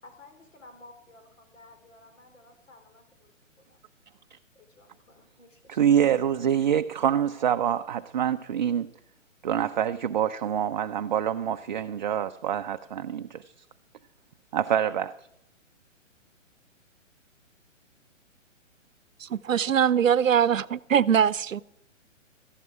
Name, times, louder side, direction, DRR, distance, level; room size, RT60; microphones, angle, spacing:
voice 1, 0.0-3.3 3.7-3.8 4.5-5.8, left 2 dB, 70° left, 4.3 m, -54 dB
voice 2, 5.7-8.9 9.4-13.4 14.5-15.1, right 9 dB, 35° right, 0.4 m, -26 dB
voice 3, 19.2-21.6, right 8 dB, 75° right, 0.7 m, -22 dB
17.0 x 14.0 x 4.8 m
figure-of-eight pair, 130°, 39 cm